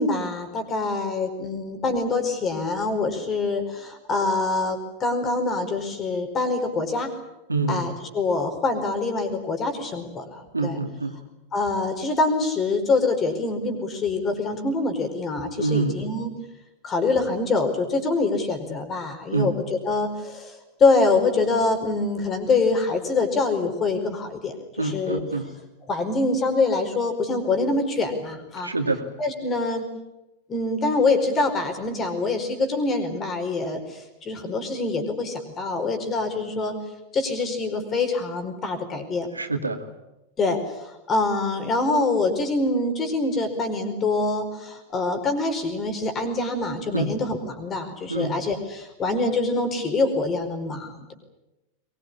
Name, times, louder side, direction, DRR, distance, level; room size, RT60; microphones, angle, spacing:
voice 1, 0.0-7.1 7.7-10.8 11.5-16.3 16.8-25.2 25.9-28.7 29.2-29.9 30.5-36.7 37.1-39.3 40.4-51.1, left 3 dB, 25° left, 7 dB, 4.9 m, -25 dB
voice 2, 7.5-7.8 10.5-11.1 15.6-16.0 19.3-19.5 24.8-25.4 28.6-29.0 39.3-39.8 46.9-47.1 48.1-48.3, right 3 dB, 80° right, 6 dB, 2.4 m, -25 dB
22.5 x 21.5 x 9.9 m, 0.96 s
figure-of-eight pair, 90°, 0 cm